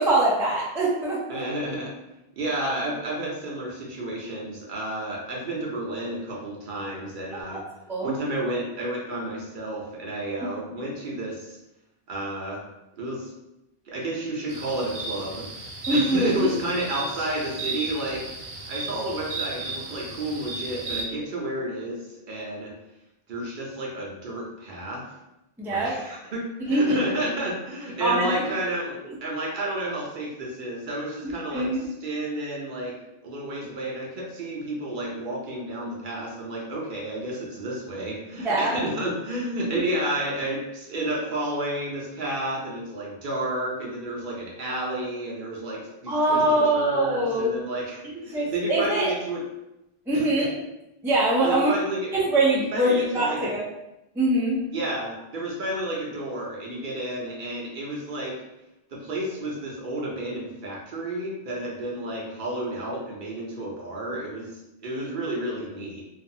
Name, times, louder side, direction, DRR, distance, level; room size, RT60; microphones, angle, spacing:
voice 1, 0.0-1.4 7.3-7.6 7.9-8.1 15.9-16.5 25.6-26.0 26.7-27.0 28.0-28.4 31.2-31.8 38.4-38.8 39.7-39.8 46.1-47.6 48.3-49.1 50.1-50.5 51.0-51.7 52.1-53.6 54.2-54.6, right 1 dB, 5° right, -5 dB, 0.3 m, -23 dB
voice 2, 1.3-1.9 2.4-7.6 8.0-11.6 12.1-12.6 13.0-13.3 13.9-15.5 15.9-18.2 18.7-22.7 23.3-25.0 25.6-31.7 32.0-32.9 33.2-49.4 50.1-50.5 51.4-52.1 52.7-53.5 54.7-58.3 58.9-64.5 64.8-66.0, right 1 dB, 60° right, -3 dB, 0.7 m, -31 dB
sound 1, 14.5-21.0, right 3 dB, 85° right, 0.9 m, -34 dB
2.5 x 2.3 x 2.6 m, 0.91 s
omnidirectional pair, 1.0 m